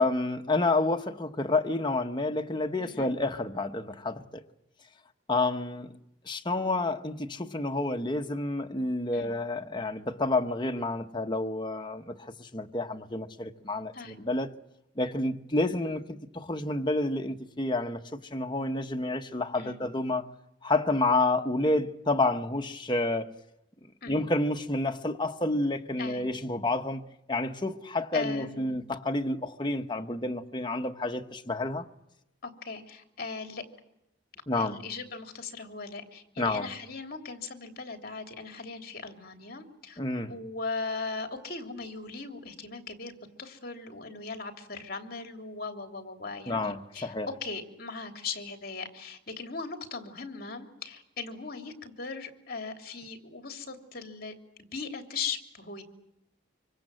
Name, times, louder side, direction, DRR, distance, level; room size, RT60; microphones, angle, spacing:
voice 1, 0.0-4.4 5.3-5.9 6.2-14.6 15.0-20.3 20.6-23.3 24.1-31.9 34.5-34.8 36.4-36.7 40.0-40.3 46.5-47.3, left 2 dB, 25° left, 1.1 m, -29 dB
voice 2, 2.8-3.1 9.1-9.3 13.9-14.2 19.5-19.8 24.0-24.2 26.0-26.2 28.1-28.8 32.4-33.6 34.5-40.0 40.3-54.3 54.7-55.8, left 4 dB, 50° left, 3.1 m, -39 dB
25.0 x 25.0 x 7.7 m
head